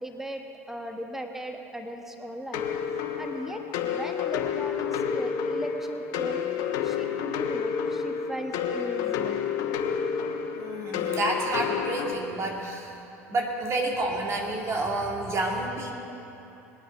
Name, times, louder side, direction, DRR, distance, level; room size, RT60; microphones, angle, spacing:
voice 1, 0.0-2.7 3.2-6.4 6.8-9.5, equal, 5° right, 4 dB, 1.3 m, -38 dB
sound 1, 2.5-12.1, left 7 dB, 60° left, 1.1 m, -30 dB
voice 2, 10.6-13.0 13.3-15.9, right 2 dB, 35° right, -1 dB, 2.2 m, -29 dB
21.0 x 9.2 x 5.2 m, 3.0 s
hypercardioid pair, 75°, 8 cm